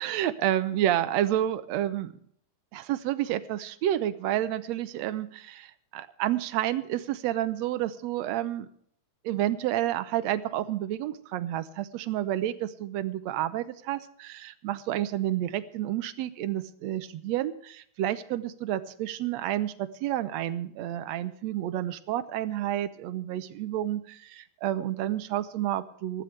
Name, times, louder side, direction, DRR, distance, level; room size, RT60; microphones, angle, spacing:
voice 1, 0.0-2.1 2.7-8.7 9.2-26.2, right 12 dB, 75° right, 12 dB, 1.6 m, -30 dB
20.0 x 14.0 x 3.3 m, 0.62 s
omnidirectional pair, 4.0 m